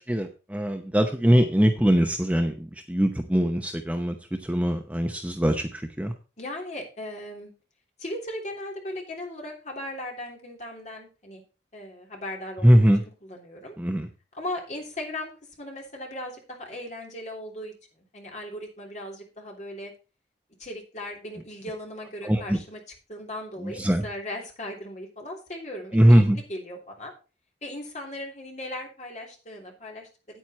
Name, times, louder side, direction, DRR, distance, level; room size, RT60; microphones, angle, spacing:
voice 1, 0.1-6.1 12.6-13.0 13.8-14.1 22.2-22.6 23.6-24.1 25.9-26.4, equal, 10° right, 5 dB, 0.8 m, -21 dB
voice 2, 6.4-7.5 8.0-11.4 11.7-13.7 14.3-15.3 15.6-19.9 20.6-22.8 23.1-27.1 27.6-30.4, left 1 dB, 40° left, 0 dB, 3.1 m, -38 dB
9.3 x 9.1 x 4.3 m, 0.32 s
head